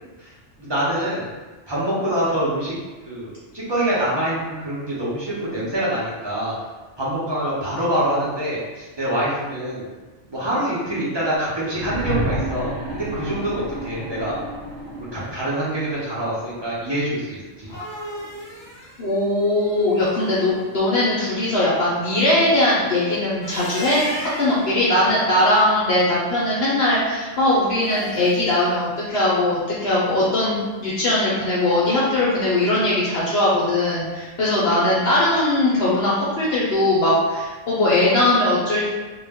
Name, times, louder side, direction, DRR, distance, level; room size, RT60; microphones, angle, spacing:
voice 1, 0.6-1.3 1.7-2.8 3.1-6.5 7.0-9.9 10.3-14.4 15.0-17.8, right 1 dB, 35° right, -8 dB, 0.4 m, -25 dB
sound 1, 11.7-15.6 16.8-16.9, right 1 dB, 70° right, 0.8 m, -30 dB
sound 2, 17.4-20.5 23.2-24.7 27.7-28.6, equal, 25° left, 0.8 m, -35 dB
voice 2, 19.0-38.9, left 1 dB, 60° left, -7 dB, 0.8 m, -20 dB
2.2 x 2.1 x 3.4 m, 1.3 s
omnidirectional pair, 1.3 m